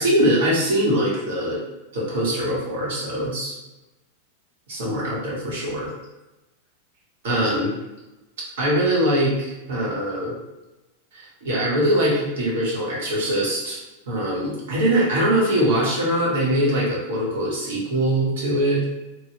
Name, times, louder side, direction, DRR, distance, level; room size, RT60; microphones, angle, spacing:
voice 1, 0.0-1.6 1.9-3.5 4.7-5.9 7.2-7.7 8.6-10.4 11.1-13.8 14.1-18.8, right 1 dB, 80° right, -4 dB, 1.3 m, -22 dB
3.1 x 2.2 x 2.9 m, 1.0 s
supercardioid pair, 150°, 0 cm